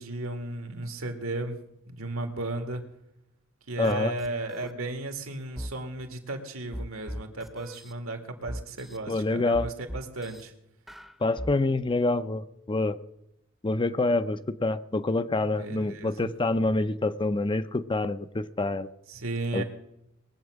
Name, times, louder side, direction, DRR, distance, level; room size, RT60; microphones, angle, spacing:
voice 1, 0.0-2.8 3.7-10.5 15.6-16.3 19.1-19.6, right 2 dB, 80° right, 5 dB, 2.2 m, -35 dB
voice 2, 3.8-4.1 9.1-9.7 11.2-13.0 13.6-18.9 19.5-19.6, left 2 dB, 25° left, 12 dB, 0.5 m, -26 dB
sound 1, 3.8-3.9 4.2-4.7 5.6-5.7 6.7-7.9 8.5-9.0 9.5-10.4 10.9-11.5, equal, ahead, 0.8 m, -38 dB
21.0 x 8.1 x 6.3 m, 0.85 s
head